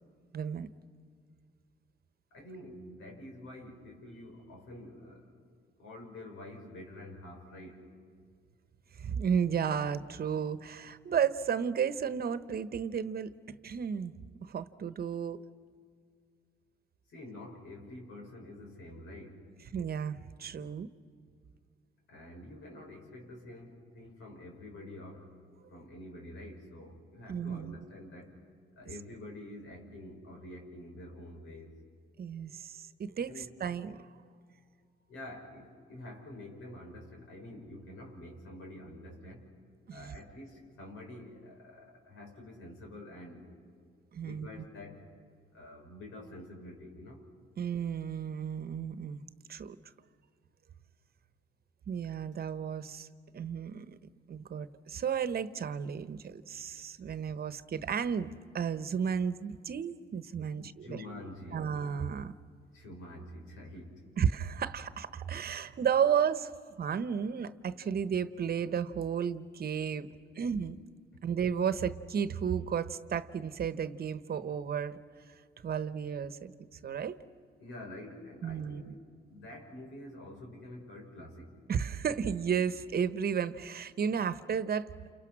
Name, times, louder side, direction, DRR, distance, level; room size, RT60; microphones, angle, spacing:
voice 1, 0.3-0.7 9.0-13.3 13.6-14.1 14.4-15.4 19.7-20.9 27.3-27.8 32.2-34.1 39.9-40.1 44.1-44.5 47.6-49.2 49.5-49.8 51.9-53.1 53.3-54.0 54.3-61.0 61.5-62.3 64.2-66.5 66.8-70.1 70.3-70.8 71.2-75.0 75.6-76.5 76.8-77.2 78.4-78.9 81.7-84.9, right 7 dB, 50° right, 13 dB, 1.1 m, -33 dB
voice 2, 2.3-5.3 5.8-7.9 17.1-19.5 22.1-25.3 25.7-28.4 28.8-31.8 33.2-33.5 35.1-39.5 39.9-43.6 44.2-45.1 45.5-47.2 60.5-61.7 62.7-64.0 65.3-65.8 77.6-81.5, left 1 dB, 85° left, 2 dB, 6.0 m, -47 dB
29.5 x 29.0 x 6.1 m, 2.2 s
cardioid pair, 90°, 20 cm